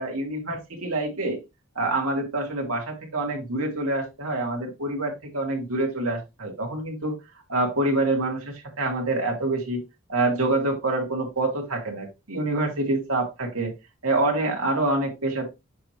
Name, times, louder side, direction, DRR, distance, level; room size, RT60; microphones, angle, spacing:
voice 1, 0.0-1.4 1.7-7.2 7.5-9.8 10.1-13.7 14.0-15.5, right 2 dB, 80° right, 1 dB, 2.7 m, -26 dB
8.3 x 3.1 x 4.6 m, 0.23 s
head